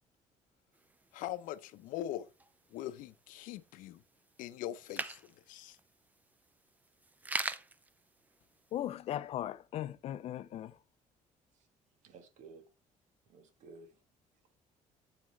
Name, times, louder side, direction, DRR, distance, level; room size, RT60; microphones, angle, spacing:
sound 1, 0.7-8.9, right 2 dB, 10° right, 0.5 m, -45 dB
voice 1, 1.1-2.3 2.7-4.0 4.4-5.8, left 12 dB, 85° left, 0.7 m, -42 dB
voice 2, 8.7-10.7, left 12 dB, 50° left, 0.5 m, -38 dB
voice 3, 12.0-12.6 13.3-14.0, right 4 dB, 65° right, 1.5 m, -54 dB
8.6 x 7.4 x 3.2 m
cardioid pair, 165°, 13 cm